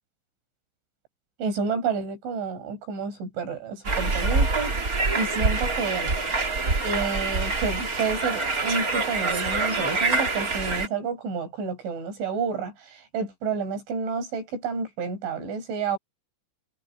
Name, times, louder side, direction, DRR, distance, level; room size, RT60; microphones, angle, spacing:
voice 1, 1.4-4.7 5.1-6.2 6.8-16.0, right 5 dB, 70° right, 9.9 m, -30 dB
sound 1, 3.8-10.9, right 3 dB, 25° right, 2.0 m, -25 dB
omnidirectional pair, 5.6 m